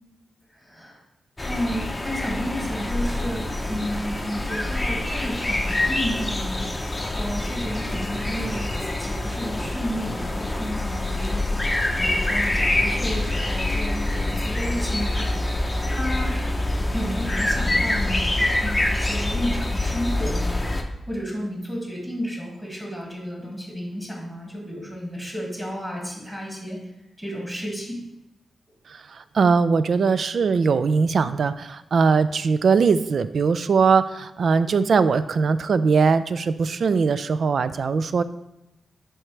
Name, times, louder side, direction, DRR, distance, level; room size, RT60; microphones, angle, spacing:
voice 1, 0.6-1.0 1.4-11.6 12.0-16.3 16.9-20.6 21.1-26.8 27.2-28.0, equal, 5° right, -2 dB, 2.0 m, -32 dB
sound 1, 1.4-20.8, left 1 dB, 15° left, 0.7 m, -25 dB
voice 2, 28.9-38.2, right 5 dB, 55° right, 13 dB, 0.4 m, -21 dB
11.0 x 4.5 x 3.3 m, 0.89 s
wide cardioid pair, 145°, 0 cm